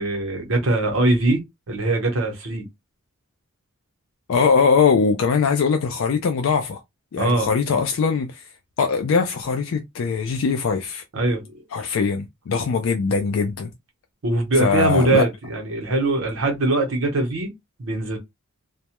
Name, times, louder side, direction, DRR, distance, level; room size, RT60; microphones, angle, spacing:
voice 1, 0.0-1.4 1.7-2.6 7.2-7.5 11.1-11.6 14.2-17.5 17.8-18.2, right 2 dB, 65° right, 0.8 m, -22 dB
voice 2, 4.3-6.8 7.1-8.5 8.8-11.0 11.7-13.7 14.6-15.2, left 5 dB, 65° left, 0.3 m, -21 dB
2.2 x 2.0 x 2.9 m
head